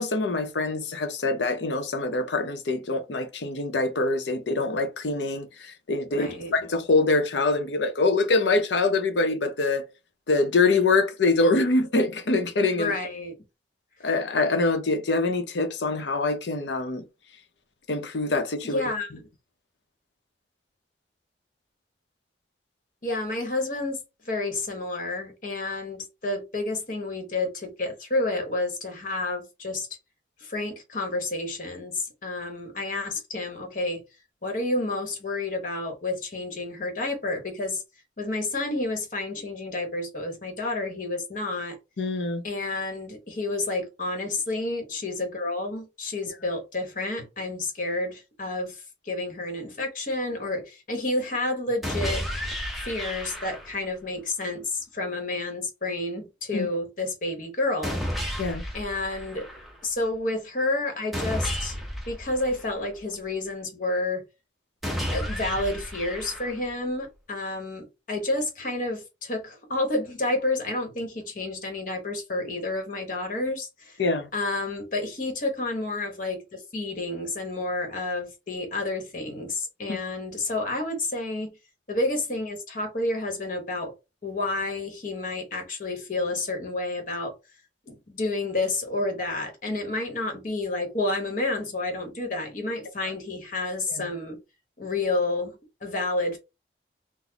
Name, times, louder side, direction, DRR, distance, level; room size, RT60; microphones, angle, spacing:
voice 1, 0.0-9.8 10.3-12.9 14.0-17.0 17.9-18.8 42.0-42.4 56.5-56.7 58.4-58.6 74.0-74.3 79.9-80.0 93.9-94.1, left 3 dB, 85° left, 0.7 m, -24 dB
voice 2, 6.1-6.5 12.8-13.3 18.6-19.1 23.0-29.9 30.4-34.0 34.4-37.8 38.2-41.8 42.4-52.2 52.8-58.0 58.7-59.5 59.8-61.8 62.1-64.2 65.1-74.0 74.3-81.5 81.9-83.9 84.2-87.4 87.9-94.4 94.8-95.5 95.8-96.4, left 2 dB, 50° left, 1.0 m, -30 dB
sound 1, 51.8-53.9 57.8-59.8 61.1-63.1 64.8-66.8, equal, ahead, 0.6 m, -32 dB
4.0 x 2.0 x 2.8 m
head